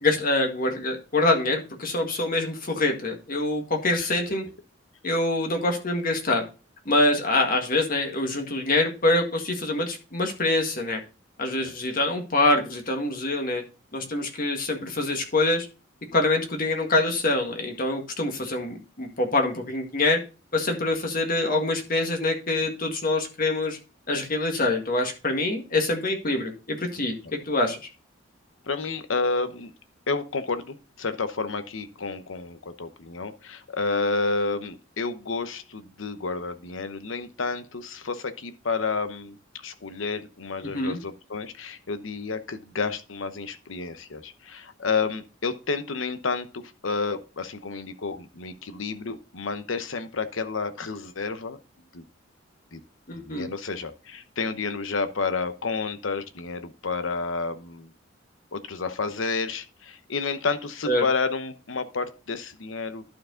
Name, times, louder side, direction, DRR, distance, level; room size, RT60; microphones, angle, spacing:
voice 1, 0.0-4.4 5.0-6.4 6.8-11.0 11.4-13.6 13.9-15.7 16.1-20.2 20.5-23.8 24.1-27.1 27.5-27.8 40.7-41.0 53.1-53.5 60.9-61.0, left 2 dB, 45° left, 3 dB, 1.7 m, -25 dB
voice 2, 28.6-29.7 30.1-39.4 39.6-51.6 51.9-52.0 52.7-52.8 53.2-57.9 58.5-63.0, left 4 dB, 90° left, 10 dB, 0.9 m, -30 dB
11.5 x 4.6 x 3.8 m, 0.31 s
head